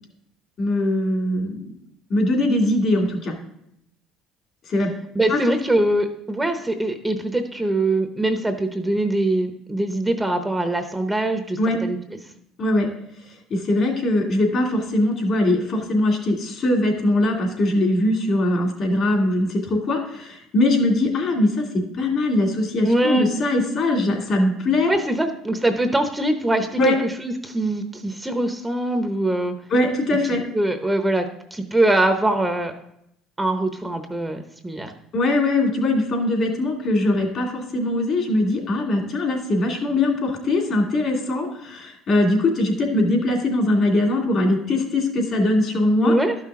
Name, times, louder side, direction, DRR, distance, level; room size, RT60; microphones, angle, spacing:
voice 1, 0.6-1.6 2.1-3.3 4.7-4.9 5.3-5.4 11.6-11.8 12.6-12.9 13.5-24.9 26.8-27.0 29.7-30.4 35.1-46.1, left 1 dB, 55° left, 2 dB, 2.5 m, -21 dB
voice 2, 5.1-12.0 22.8-23.3 24.9-29.5 30.5-31.3 31.5-32.7 33.4-34.9 46.0-46.4, right 1 dB, 10° right, 6 dB, 0.8 m, -22 dB
12.0 x 5.8 x 3.7 m, 0.78 s
supercardioid pair, 85°, 0 cm